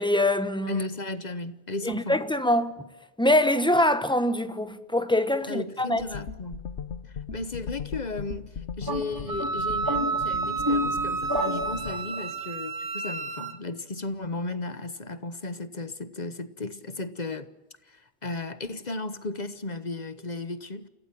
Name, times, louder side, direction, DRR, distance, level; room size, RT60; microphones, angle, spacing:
voice 1, 0.0-0.7 1.9-2.7 3.2-6.0, left 1 dB, 5° left, 1.1 m, -24 dB
voice 2, 0.7-2.2 5.5-6.6 7.3-17.5 17.9-20.9, left 2 dB, 40° left, 1.1 m, -35 dB
sound 1, 6.0-11.9, left 6 dB, 80° left, 1.3 m, -39 dB
sound 2, 8.8-12.3, left 1 dB, 20° right, 2.0 m, -31 dB
Wind instrument woodwind instrument, 9.3-13.6, right 4 dB, 85° right, 1.8 m, -30 dB
27.5 x 17.0 x 7.6 m
omnidirectional pair, 1.1 m